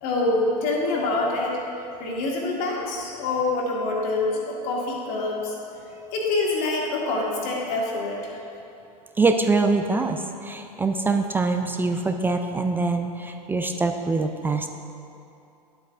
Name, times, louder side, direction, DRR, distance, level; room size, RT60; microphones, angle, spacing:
voice 1, 0.0-1.6 2.0-5.6 6.1-8.4, left 2 dB, 45° left, -2 dB, 1.8 m, -26 dB
voice 2, 9.2-14.7, right 3 dB, 10° right, 5 dB, 0.3 m, -24 dB
11.5 x 7.8 x 2.5 m, 2.7 s
figure-of-eight pair, 85°, 21 cm